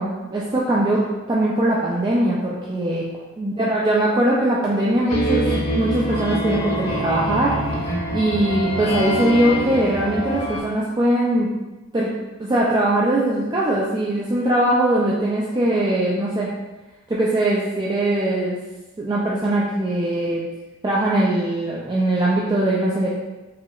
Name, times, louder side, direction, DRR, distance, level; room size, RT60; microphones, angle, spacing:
voice 1, 0.0-3.0 3.4-5.5 5.7-11.5 11.9-12.1 12.4-16.5 17.1-18.6 19.0-20.4 20.8-23.1, right 1 dB, 20° right, -5 dB, 0.3 m, -21 dB
sound 1, 5.1-10.6, right 1 dB, 85° left, 1.0 m, -25 dB
4.9 x 2.8 x 2.3 m, 1.1 s
head